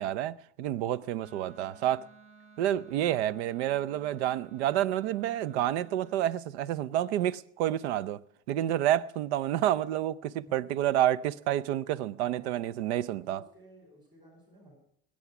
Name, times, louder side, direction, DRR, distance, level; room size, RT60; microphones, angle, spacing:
voice 1, 0.0-2.0 2.6-8.2 8.5-13.4, right 12 dB, 90° right, 0.6 m, -29 dB
Wind instrument woodwind instrument, 1.2-6.3, right 5 dB, 40° right, 2.2 m, -56 dB
voice 2, 12.2-12.7 13.3-14.8, right 1 dB, 15° right, 5.2 m, -56 dB
20.5 x 8.6 x 5.9 m
supercardioid pair, 100°, 32 cm